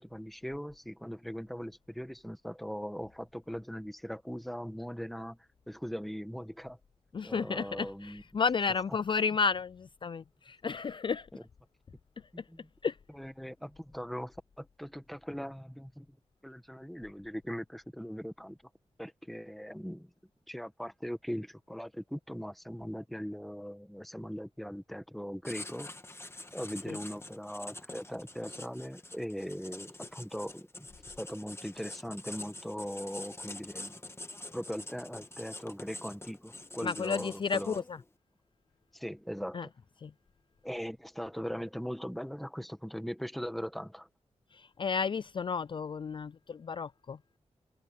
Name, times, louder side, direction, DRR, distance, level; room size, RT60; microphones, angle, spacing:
voice 1, 0.0-5.4 5.7-6.8 7.2-8.2 11.3-11.4 12.3-12.7 13.1-16.2 16.4-18.6 19.0-20.1 20.5-25.9 26.5-30.9 31.2-33.9 34.5-37.8 38.9-39.7 40.6-44.1, equal, ahead, 1.7 m, -40 dB
voice 2, 7.1-11.3 12.8-13.0 26.9-27.0 36.8-38.0 39.5-39.7 40.0-40.1 44.5-47.2, left 5 dB, 45° left, 0.3 m, -32 dB
Writing, 25.4-38.0, left 2 dB, 20° left, 1.4 m, -46 dB
wide cardioid pair, 100°, 12 cm